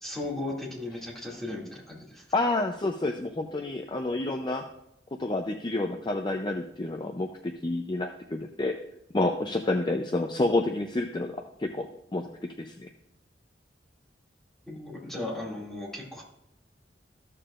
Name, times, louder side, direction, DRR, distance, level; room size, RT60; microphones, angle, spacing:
voice 1, 0.0-2.2 14.7-16.2, left 2 dB, ahead, -5 dB, 2.3 m, -36 dB
voice 2, 2.3-4.6 5.2-8.8 9.1-11.9 12.1-12.3 12.6-12.9, left 2 dB, 25° left, 4 dB, 0.5 m, -29 dB
14.0 x 6.8 x 2.5 m, 0.83 s
head